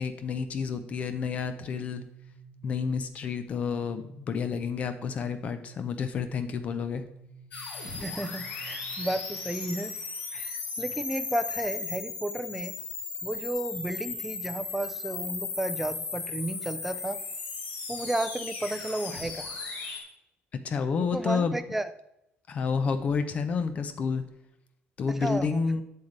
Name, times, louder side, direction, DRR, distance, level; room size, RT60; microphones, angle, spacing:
voice 1, 0.0-2.0 2.6-7.0 20.5-21.6 22.5-24.2 25.0-25.8, left 5 dB, 40° left, 9 dB, 0.6 m, -30 dB
sound 1, 1.6-9.1, right 6 dB, 75° right, 1.1 m, -52 dB
sound 2, 7.5-20.0, left 4 dB, 65° left, 2.3 m, -36 dB
voice 2, 8.0-9.9 10.3-12.7 13.2-17.2 17.9-19.5 21.0-21.9 25.1-25.8, right 1 dB, 5° right, 11 dB, 0.5 m, -33 dB
7.8 x 7.3 x 3.3 m, 0.81 s
cardioid pair, 155°, 4 cm